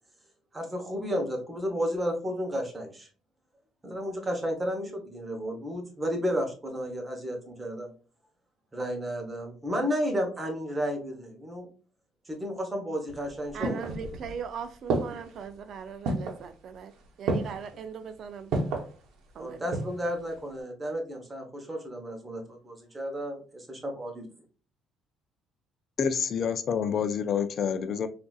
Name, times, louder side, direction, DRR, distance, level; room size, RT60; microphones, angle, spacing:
voice 1, 0.5-3.1 3.8-7.9 8.7-11.7 12.3-14.0 19.4-24.2, equal, 15° right, 2 dB, 0.9 m, -32 dB
sound 1, 13.1-14.4 14.9-15.4 16.0-16.5 17.3-17.7 18.5-18.9 19.5-20.1 20.3-20.4, right 3 dB, 80° right, 0.8 m, -30 dB
voice 2, 13.5-16.9 17.2-18.6 19.3-19.8, right 7 dB, 50° right, 9 dB, 0.3 m, -40 dB
voice 3, 26.0-28.1, left 7 dB, 45° left, 9 dB, 0.3 m, -28 dB
3.9 x 2.5 x 2.3 m, 0.38 s
cardioid pair, 125°, 0 cm